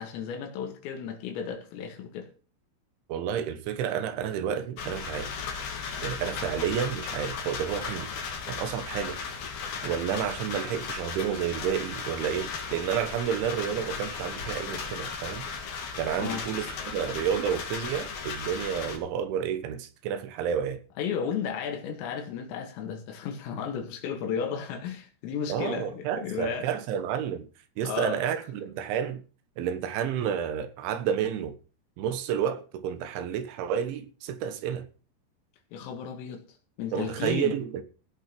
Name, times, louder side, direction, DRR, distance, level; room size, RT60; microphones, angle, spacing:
voice 1, 0.0-2.3 6.4-6.5 16.2-16.5 21.0-26.7 27.8-28.2 35.7-36.4 36.8-37.6, left 7 dB, 85° left, 4.6 m, -33 dB
voice 2, 3.1-5.3 6.0-8.1 8.5-9.2 9.8-15.4 16.0-20.8 25.5-27.5 27.8-29.2 29.6-31.6 32.0-34.9 36.9-37.8, right 8 dB, 75° right, 3.5 m, -30 dB
sound 1, 4.8-19.0, left 5 dB, 55° left, 3.8 m, -36 dB
16.5 x 6.3 x 6.1 m
omnidirectional pair, 5.8 m